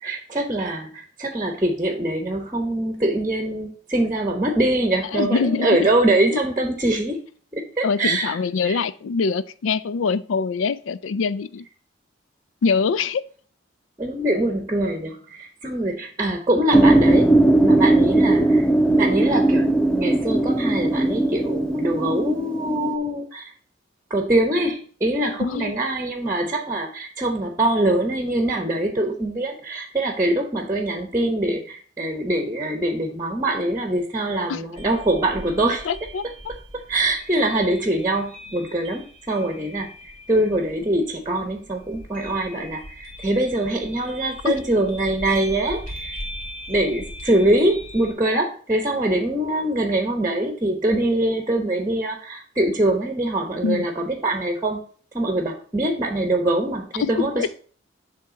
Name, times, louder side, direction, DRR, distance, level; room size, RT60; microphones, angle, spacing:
voice 1, 0.0-7.2 7.5-8.4 8.6-8.8 14.0-17.3 17.6-18.7 19.0-23.5 24.1-35.9 36.7-40.0 40.3-46.2 46.7-54.8 55.1-57.5, right 1 dB, 15° right, 4 dB, 0.9 m, -23 dB
voice 2, 5.1-5.8 6.3-6.4 7.8-11.7 12.6-13.2 25.4-25.7 34.5-34.6 35.9-36.2 44.4-44.6 53.6-53.9 57.0-57.5, left 5 dB, 85° left, 15 dB, 0.4 m, -24 dB
sound 1, 16.7-22.9, right 2 dB, 5° left, 0.4 m, -18 dB
sound 2, 34.8-48.1, equal, 40° left, 2.3 m, -40 dB
7.5 x 3.6 x 6.2 m, 0.43 s
head